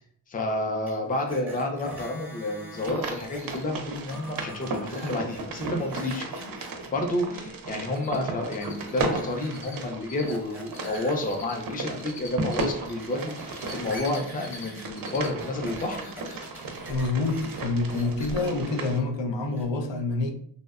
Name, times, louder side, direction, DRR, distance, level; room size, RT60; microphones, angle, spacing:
voice 1, 0.3-6.3 6.9-16.1, left 1 dB, 20° left, 0.4 m, -30 dB
sound 1, 0.9-3.6 3.9-6.9 8.6-9.9 10.1-11.9 12.3-17.6 17.9-18.5 19.5-19.6, equal, 5° right, 0.7 m, -45 dB
sound 2, 2.8-19.0, right 2 dB, 50° right, 0.5 m, -35 dB
Cricket, 7.9-8.2 8.4-9.8 10.0-12.7 13.3-14.6 14.9-15.3 15.6-15.7 18.2-18.3 18.7-18.8 19.0-19.1, left 5 dB, 40° left, 0.9 m, -44 dB
voice 2, 16.9-20.3, left 3 dB, 75° left, 0.5 m, -27 dB
2.6 x 2.1 x 2.3 m
cardioid pair, 70°, 45 cm